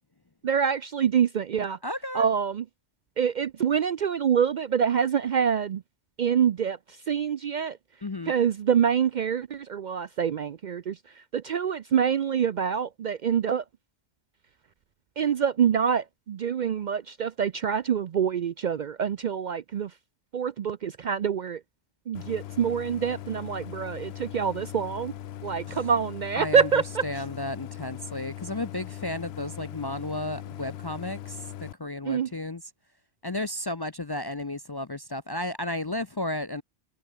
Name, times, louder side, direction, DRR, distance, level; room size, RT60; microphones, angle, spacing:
voice 1, 0.4-1.8 2.1-2.6 3.2-5.8 6.2-6.8 7.1-7.8 8.3-11.0 11.3-13.6 15.2-19.9 20.3-21.6 22.1-25.1 25.4-27.0 32.1-32.3, right 7 dB, 55° right, 0.6 m, -26 dB
voice 2, 1.8-2.3 8.0-8.3 25.7-25.9 26.4-32.6 33.2-36.6, left 1 dB, 30° left, 0.5 m, -33 dB
Idling, 22.1-31.7, left 11 dB, 70° left, 0.9 m, -40 dB
omnidirectional pair, 1.1 m